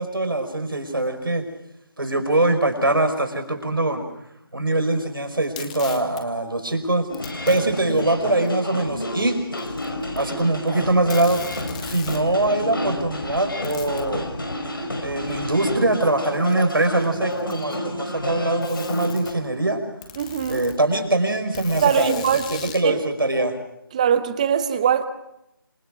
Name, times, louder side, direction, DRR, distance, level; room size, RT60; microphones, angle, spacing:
voice 1, 0.0-1.4 2.0-4.1 4.5-7.1 7.5-9.4 10.1-11.4 11.9-14.2 15.0-19.8 20.5-23.5, right 2 dB, 70° right, 7 dB, 5.5 m, -22 dB
Packing tape duct tape, 5.4-6.2 7.1-7.6 8.4-8.5 9.5-10.4 10.7-10.8 11.1-12.3 13.6-14.1 15.3-15.4 16.3-16.4 17.2-17.9 18.6-19.3 20.0-20.8 21.6-22.9, left 7 dB, 15° left, 1.8 m, -38 dB
sound 1, 7.1-19.3, left 1 dB, 70° left, 5.9 m, -30 dB
voice 2, 20.2-20.7 21.8-23.0 23.9-25.1, right 8 dB, 20° right, 12 dB, 1.1 m, -22 dB
27.0 x 24.0 x 6.1 m, 0.83 s
figure-of-eight pair, 155°, 12 cm